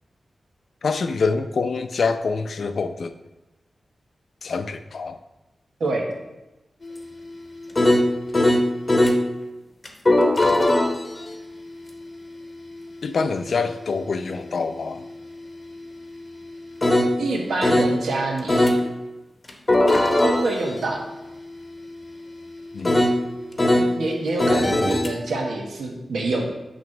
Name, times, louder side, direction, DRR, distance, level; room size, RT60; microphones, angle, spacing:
voice 1, 0.8-3.1 4.4-5.2 13.0-15.0 22.7-23.0, left 4 dB, 65° left, 9 dB, 0.5 m, -25 dB
voice 2, 5.8-6.1 17.2-18.8 20.2-21.0 23.7-26.5, right 2 dB, 90° right, 0 dB, 1.3 m, -26 dB
sound 1, 6.8-9.2 9.8-18.0 18.5-18.8 19.5-23.9 24.4-25.1, left 1 dB, 25° left, 0.9 m, -23 dB
9.2 x 3.1 x 5.9 m, 1.0 s
wide cardioid pair, 120°, 0 cm